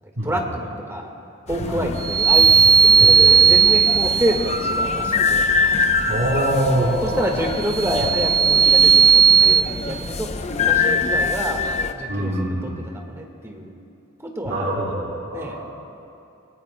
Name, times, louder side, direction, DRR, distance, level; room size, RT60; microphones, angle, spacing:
voice 1, 0.0-1.1 1.5-5.5 6.8-11.7 11.9-13.7 14.3-14.7 15.3-15.6, equal, 15° right, 1 dB, 1.6 m, -28 dB
sound 1, 1.5-11.9, left 4 dB, 30° left, 0.6 m, -25 dB
voice 2, 1.6-1.9 3.0-3.5 6.1-7.2 8.0-8.1 12.1-12.7 14.4-15.6, right 1 dB, 50° right, -9 dB, 3.4 m, -24 dB
sound 2, 2.0-4.5 7.5-9.6, right 7 dB, 35° right, 0.5 m, -15 dB
29.0 x 17.5 x 2.2 m, 2.7 s
head